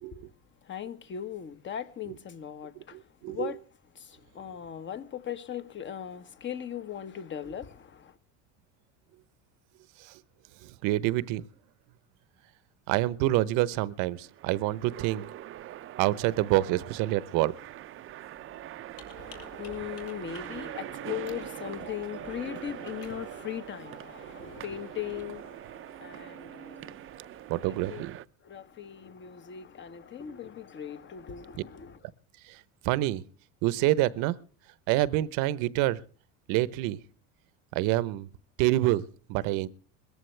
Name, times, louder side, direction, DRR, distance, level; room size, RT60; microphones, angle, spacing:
voice 1, 0.7-3.0 3.3-3.6 3.9-8.1 19.1-27.0 27.6-28.0 28.4-32.0, left 9 dB, 35° left, 1.4 m, -39 dB
voice 2, 2.9-3.5 10.8-11.4 12.9-15.2 16.0-17.5 27.5-28.2 32.5-32.6 32.8-33.2 33.6-34.4 34.9-36.0 36.5-37.0 37.7-38.3 38.6-39.7, right 16 dB, 70° right, 0.9 m, -27 dB
sound 1, 13.9-28.3, right 13 dB, 40° right, 0.6 m, -43 dB
Computer keyboard, 18.3-25.2, left 7 dB, 70° left, 4.0 m, -57 dB
21.0 x 14.5 x 3.3 m
supercardioid pair, 125°, 34 cm